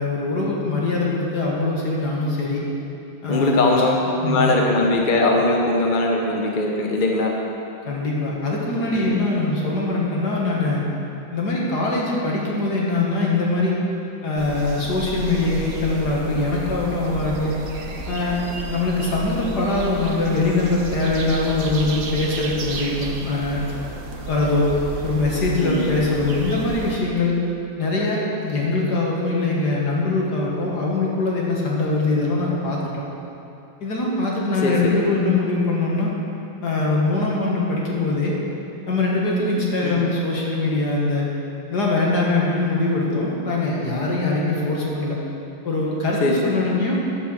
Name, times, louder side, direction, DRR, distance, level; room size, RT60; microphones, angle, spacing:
voice 1, 0.0-2.6 3.2-3.6 4.2-4.6 7.9-10.8 11.3-13.8 14.2-17.6 18.1-23.6 24.3-24.7 25.0-27.4 27.8-33.0 33.8-36.1 36.6-38.3 38.9-41.3 41.7-45.2 45.6-47.0, left 2 dB, 55° left, -3 dB, 2.0 m, -22 dB
voice 2, 3.3-7.3 8.9-9.3 25.6-25.9 34.6-35.0 39.8-40.0 46.2-46.7, left 2 dB, 40° left, 0 dB, 0.7 m, -21 dB
sound 1, 14.4-27.0, right 3 dB, 55° right, 0.9 m, -32 dB
10.0 x 7.8 x 6.3 m, 2.8 s
omnidirectional pair, 2.1 m